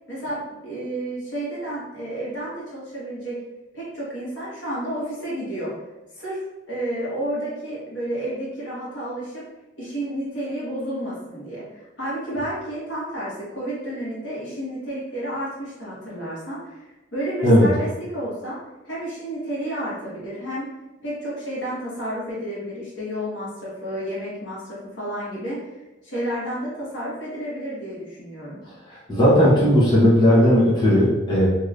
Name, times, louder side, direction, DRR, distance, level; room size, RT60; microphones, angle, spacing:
voice 1, 0.1-3.4 3.7-5.7 6.1-6.4 6.7-9.4 9.8-18.6 18.8-20.7 21.0-25.7 26.0-28.6, right 1 dB, 70° left, -8 dB, 1.5 m, -31 dB
voice 2, 29.1-31.5, equal, 25° left, -9 dB, 0.9 m, -16 dB
3.1 x 2.8 x 2.5 m, 1.1 s
head